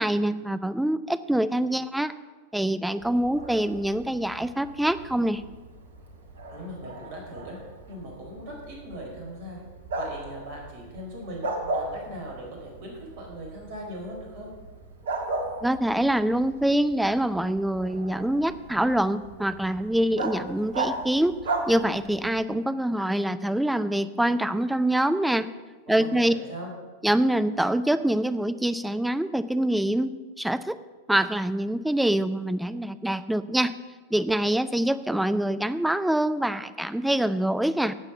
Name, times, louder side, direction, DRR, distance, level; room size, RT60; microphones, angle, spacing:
voice 1, 0.0-2.1 2.5-5.4 15.6-21.4 21.7-25.5 25.9-26.3 27.0-30.8 31.1-33.7 34.1-37.9, right 1 dB, 5° right, 13 dB, 0.5 m, -25 dB
Bark, 3.0-22.4, right 2 dB, 65° right, 1.5 m, -37 dB
voice 2, 6.5-7.6 7.9-9.6 10.0-11.5 11.7-14.5 25.9-26.7, equal, 50° right, 0 dB, 4.5 m, -39 dB
11.5 x 7.8 x 7.1 m, 1.3 s
figure-of-eight pair, 90°, 0 cm